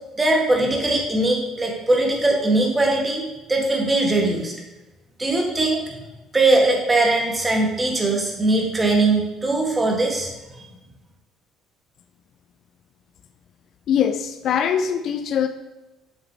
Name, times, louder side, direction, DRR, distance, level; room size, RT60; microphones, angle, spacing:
voice 1, 0.2-4.5 5.2-5.8 6.3-10.3, right 2 dB, 20° right, 0 dB, 1.8 m, -20 dB
voice 2, 13.9-15.5, left 8 dB, 55° left, 9 dB, 0.4 m, -22 dB
7.2 x 6.5 x 3.0 m, 1.0 s
hypercardioid pair, 55°, 0 cm